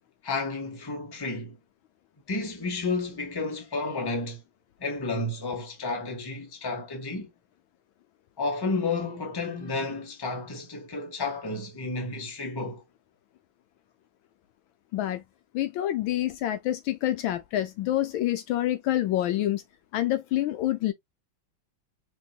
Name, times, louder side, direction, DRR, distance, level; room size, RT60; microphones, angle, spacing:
voice 1, 0.2-1.6 2.3-4.4 4.8-7.3 8.4-12.8, left 3 dB, 15° left, 0.9 m, -31 dB
voice 2, 14.9-15.2 15.5-19.6 19.9-20.9, left 13 dB, 75° left, 1.3 m, -27 dB
5.5 x 3.1 x 2.2 m
omnidirectional pair, 2.3 m